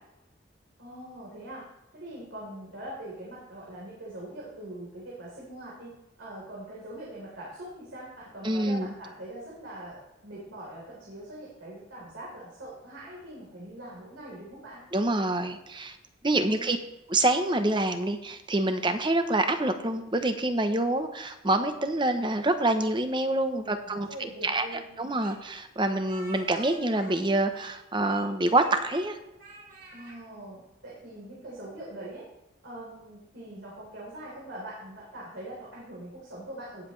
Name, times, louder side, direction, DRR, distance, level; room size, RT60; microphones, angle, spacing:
voice 1, 0.8-1.6 1.9-14.8 16.3-16.8 23.5-25.0 29.9-32.3 32.6-36.9, right 1 dB, 85° right, -6 dB, 3.8 m, -42 dB
voice 2, 8.4-8.9 14.9-16.0 16.2-16.8 17.1-24.1 24.4-24.7 25.0-29.2, right 2 dB, 25° right, 8 dB, 0.8 m, -26 dB
Speech, 25.2-27.8 28.1-29.1 29.4-30.2, right 2 dB, 50° right, 4.4 m, -47 dB
18.0 x 7.4 x 3.2 m, 0.92 s
head